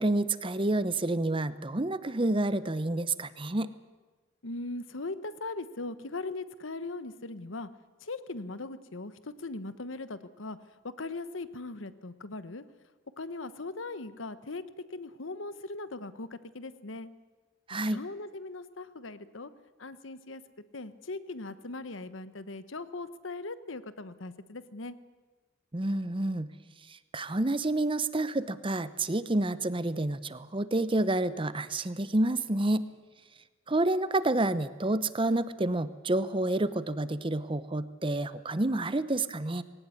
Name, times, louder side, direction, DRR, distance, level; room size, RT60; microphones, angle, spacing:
voice 1, 0.0-3.7 17.7-18.0 25.7-26.5 27.1-32.9 33.7-39.6, right 2 dB, 25° right, 14 dB, 0.9 m, -29 dB
voice 2, 4.4-7.7 8.0-10.6 10.8-12.6 13.2-14.6 14.9-17.1 17.9-19.5 19.8-20.4 20.7-24.9, left 2 dB, 80° left, 13 dB, 1.1 m, -39 dB
20.0 x 18.0 x 9.8 m, 1.3 s
head